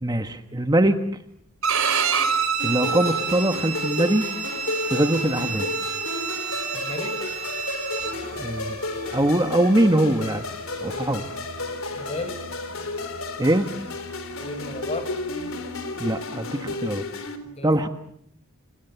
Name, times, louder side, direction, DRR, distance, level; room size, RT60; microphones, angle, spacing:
voice 1, 0.0-1.0 2.6-4.3 4.8-5.7 8.4-8.8 9.1-10.4 10.8-11.2 13.4-13.7 16.0-17.0 17.6-17.9, right 1 dB, 20° right, 7 dB, 1.3 m, -22 dB
Bowed string instrument, 1.6-8.1, right 7 dB, 65° right, 5.1 m, -27 dB
sound 1, 2.6-17.4, left 3 dB, 65° left, 4.1 m, -32 dB
voice 2, 6.7-7.2 12.0-12.4 14.3-15.1 17.4-17.9, left 2 dB, 30° left, 11 dB, 4.2 m, -34 dB
sound 2, 8.0-16.2, right 1 dB, 45° right, 5.7 m, -43 dB
28.5 x 27.5 x 7.0 m, 0.71 s
head